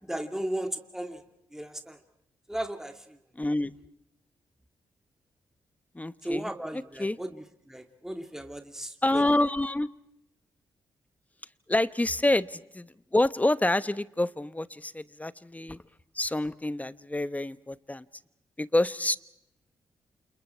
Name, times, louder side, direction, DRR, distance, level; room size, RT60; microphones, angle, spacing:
voice 1, 0.0-1.2 1.5-2.0 2.5-3.2 6.2-9.2, right 1 dB, 5° right, 6 dB, 2.4 m, -36 dB
voice 2, 3.4-3.7 5.9-6.5 7.0-7.2 9.0-9.9 11.7-15.8 16.1-18.0 18.6-19.2, left 1 dB, 15° left, 16 dB, 1.1 m, -27 dB
29.5 x 28.5 x 4.5 m, 0.81 s
hypercardioid pair, 40°, 9 cm